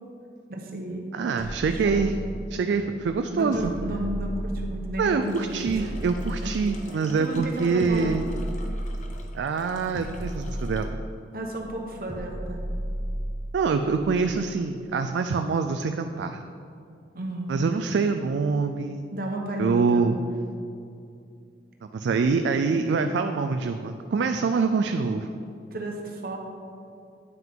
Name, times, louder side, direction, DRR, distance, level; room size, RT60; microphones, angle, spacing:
voice 1, 0.5-1.2 1.8-2.0 3.3-5.9 6.4-6.5 7.2-8.2 11.3-12.6 17.1-17.5 19.1-20.1 22.7-22.8 25.7-26.4, right 1 dB, 55° right, 1 dB, 1.0 m, -32 dB
voice 2, 1.1-2.1 2.5-3.7 5.0-8.2 9.3-11.0 13.5-16.4 17.5-19.1 19.6-20.2 21.9-25.3, right 4 dB, 80° right, 7 dB, 0.3 m, -25 dB
sound 1, 1.4-2.7 3.5-5.2 5.7-7.1 7.8-9.4 9.9-11.3 12.1-13.7, right 1 dB, 20° left, 1.1 m, -33 dB
sound 2, 5.2-10.9, left 2 dB, 45° left, 0.7 m, -48 dB
9.1 x 5.7 x 3.6 m, 2.5 s
head